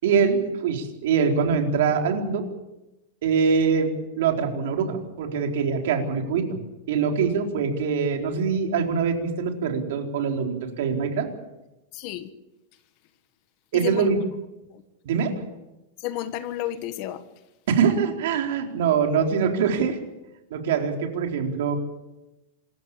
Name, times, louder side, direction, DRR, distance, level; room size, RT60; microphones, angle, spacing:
voice 1, 0.0-2.4 3.2-3.9 4.2-6.6 6.9-11.3 13.7-14.2 15.0-15.3 17.7-20.0 20.5-21.7, right 6 dB, 60° right, 3 dB, 4.3 m, -23 dB
voice 2, 11.9-12.3 13.7-14.1 14.7-14.8 16.0-17.2, left 13 dB, 35° left, 11 dB, 1.4 m, -31 dB
26.5 x 14.5 x 8.6 m, 0.98 s
supercardioid pair, 175°, 0 cm